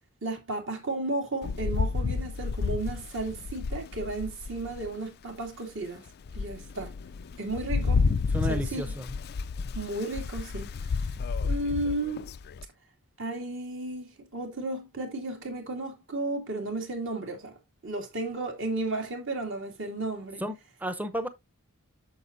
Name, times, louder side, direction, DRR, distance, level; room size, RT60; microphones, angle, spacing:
voice 1, 0.2-6.0 6.3-6.9 7.4-8.1 8.5-9.0 9.7-11.0 11.4-12.3 13.2-17.5 17.8-20.4, right 2 dB, 60° right, 2.6 m, -34 dB
Rain, 1.4-4.9 5.5-5.6 6.1-12.7, left 4 dB, 45° left, 0.3 m, -31 dB
voice 2, 8.3-9.1 20.4-21.3, right 1 dB, 5° right, 0.7 m, -33 dB
8.6 x 6.9 x 2.6 m
head